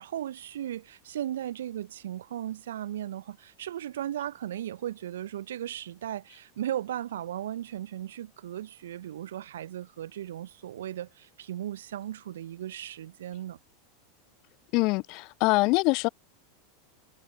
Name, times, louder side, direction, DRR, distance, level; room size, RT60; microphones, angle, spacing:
voice 1, 0.0-13.6, right 11 dB, 65° right, 0.6 m, -36 dB
voice 2, 14.7-16.1, left 26 dB, 50° left, 0.8 m, -24 dB
figure-of-eight pair, 85°, 0 cm